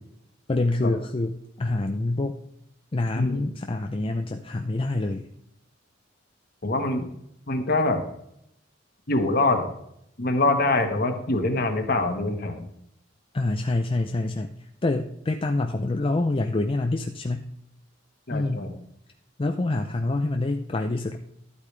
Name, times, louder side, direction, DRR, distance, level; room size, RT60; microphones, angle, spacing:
voice 1, 0.5-2.4 2.9-5.3 13.3-17.5 18.3-18.6 19.4-21.2, left 2 dB, 25° left, 5 dB, 0.5 m, -26 dB
voice 2, 3.2-3.5 6.6-7.1 7.5-8.0 9.1-9.7 10.2-12.7 18.3-18.7, left 2 dB, 50° left, 6 dB, 1.4 m, -24 dB
12.5 x 8.4 x 3.3 m, 0.77 s
head